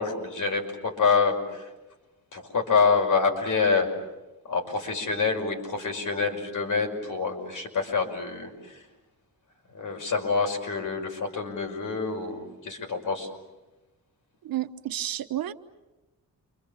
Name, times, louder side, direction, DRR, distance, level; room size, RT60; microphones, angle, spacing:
voice 1, 0.0-1.7 2.3-3.9 4.4-8.8 9.7-13.3, left 5 dB, 60° left, 3 dB, 5.8 m, -26 dB
voice 2, 14.4-15.5, right 13 dB, 90° right, 8 dB, 1.1 m, -31 dB
29.0 x 26.0 x 7.1 m, 1.1 s
wide cardioid pair, 150°, 34 cm